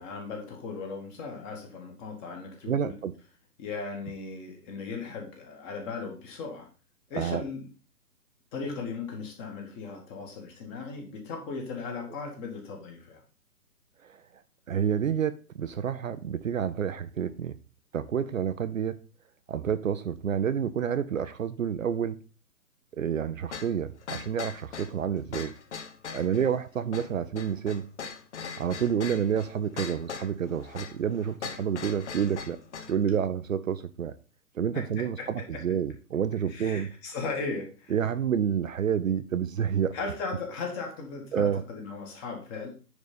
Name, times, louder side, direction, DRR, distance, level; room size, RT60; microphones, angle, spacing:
voice 1, 0.0-2.9 3.6-6.7 7.1-7.7 8.5-13.2 26.2-26.4 34.7-35.6 36.5-37.9 39.9-42.7, left 4 dB, 20° left, 1.7 m, -37 dB
voice 2, 2.7-3.1 7.2-7.4 14.0-14.2 14.7-17.5 17.9-19.0 19.5-22.2 22.9-25.5 26.1-27.8 28.6-32.6 32.9-34.1 34.6-36.9 37.9-40.0 41.3-41.6, right 8 dB, 55° right, 0.7 m, -29 dB
sound 1, 23.5-33.0, left 6 dB, 45° left, 1.1 m, -40 dB
9.6 x 4.2 x 5.3 m
hypercardioid pair, 150°, 47 cm